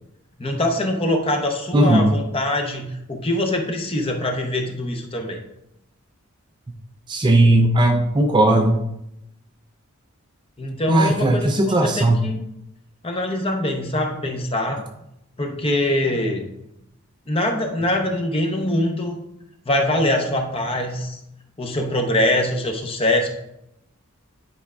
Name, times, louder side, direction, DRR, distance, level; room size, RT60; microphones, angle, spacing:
voice 1, 0.4-5.4 10.6-12.4 13.0-14.8 15.4-16.4 17.3-19.2 19.7-21.2 21.6-23.3, left 1 dB, 25° left, 4 dB, 0.7 m, -23 dB
voice 2, 1.7-2.1 7.1-8.8 10.9-12.2, right 1 dB, 20° right, 4 dB, 0.4 m, -17 dB
9.7 x 4.8 x 2.3 m, 0.83 s
head